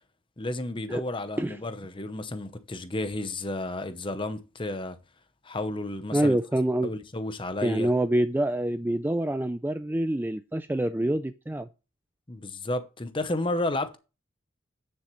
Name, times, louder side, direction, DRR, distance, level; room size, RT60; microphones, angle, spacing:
voice 1, 0.4-5.0 5.4-6.4 6.8-7.9 12.3-14.0, left 2 dB, 25° left, 0.8 m, -32 dB
voice 2, 6.1-6.9 7.6-11.7, right 1 dB, 10° right, 0.3 m, -26 dB
9.5 x 7.0 x 3.1 m
head